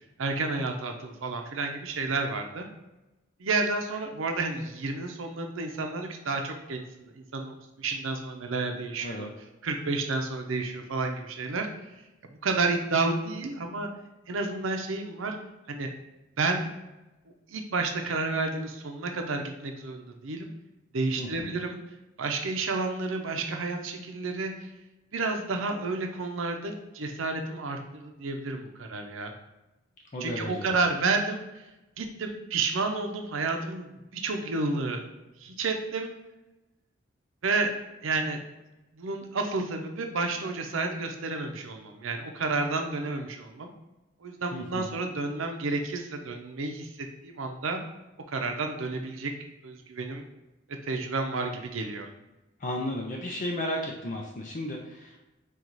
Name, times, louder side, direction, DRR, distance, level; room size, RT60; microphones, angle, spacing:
voice 1, 0.2-2.7 3.4-9.3 9.6-11.7 12.4-13.9 14.3-15.4 15.7-15.9 16.4-16.7 17.5-20.5 20.9-21.8 22.2-24.5 25.1-29.3 30.2-31.4 32.0-35.0 35.4-36.1 37.4-37.7 38.0-38.4 38.9-43.7 44.2-46.9 47.2-47.8 48.3-49.3 49.6-50.3 50.9-52.1, right 3 dB, 80° right, 4 dB, 0.6 m, -30 dB
voice 2, 21.2-21.6 30.1-30.7 44.5-44.9 52.6-55.3, left 1 dB, 40° left, 0 dB, 0.5 m, -34 dB
4.6 x 2.4 x 3.9 m, 1.0 s
head